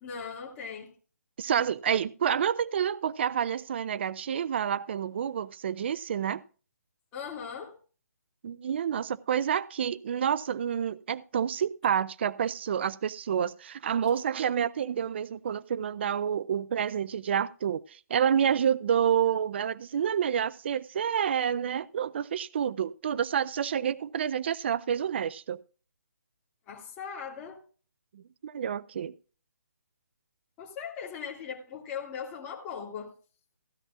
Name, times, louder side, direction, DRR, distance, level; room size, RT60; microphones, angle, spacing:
voice 1, 0.0-0.9 7.1-7.8 26.7-27.6 30.6-33.1, left 7 dB, 15° left, 2.1 m, -39 dB
voice 2, 1.4-6.4 8.4-25.6 28.1-29.1, right 8 dB, 40° right, 0.4 m, -28 dB
16.0 x 12.0 x 2.4 m
hypercardioid pair, 155°, 9 cm